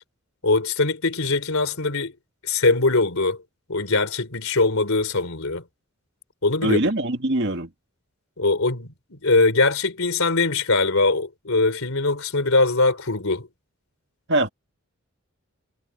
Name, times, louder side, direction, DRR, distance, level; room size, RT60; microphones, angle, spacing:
voice 1, 0.4-2.1 2.4-3.4 3.7-5.6 6.4-6.8 8.4-13.5, left 3 dB, 80° left, 3.4 m, -21 dB
voice 2, 6.6-7.7 14.3-14.5, right 1 dB, 55° right, 2.1 m, -22 dB
head